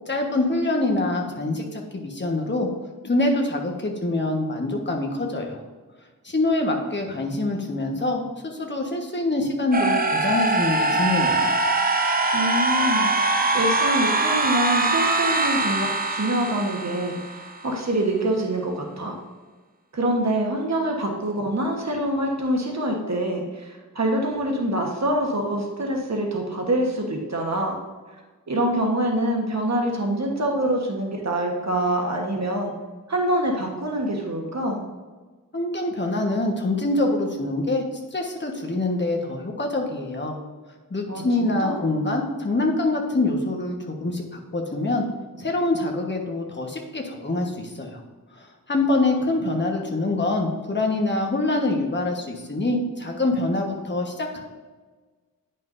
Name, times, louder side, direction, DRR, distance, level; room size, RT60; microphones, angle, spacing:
voice 1, 0.1-2.7 3.0-5.6 6.2-11.5 35.5-37.8 38.1-40.4 40.9-45.0 45.4-48.0 48.3-54.4, left 2 dB, 30° left, 1 dB, 1.3 m, -25 dB
sound 1, 9.7-17.6, right 2 dB, 25° right, 0.7 m, -22 dB
voice 2, 12.3-19.2 19.9-27.8 28.5-32.7 33.1-34.8 41.1-41.8, right 1 dB, 50° right, 0 dB, 1.3 m, -25 dB
10.0 x 5.6 x 2.6 m, 1.3 s
wide cardioid pair, 80°, 34 cm